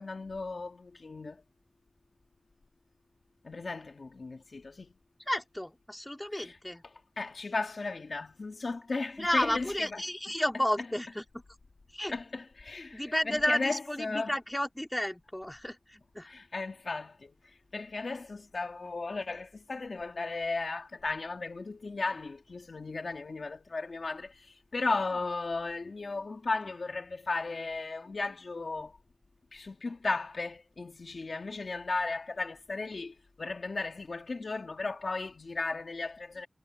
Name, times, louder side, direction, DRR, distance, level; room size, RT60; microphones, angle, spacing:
voice 1, 0.0-1.4 3.4-4.9 6.3-6.6 7.2-10.0 12.1-14.3 16.2-17.3 17.7-29.0 29.5-36.5, left 3 dB, 60° left, 1.9 m, -35 dB
voice 2, 5.3-6.8 9.2-11.4 11.9-12.1 12.9-16.3, left 1 dB, 10° left, 2.1 m, -32 dB
wide cardioid pair, 95°, 0 cm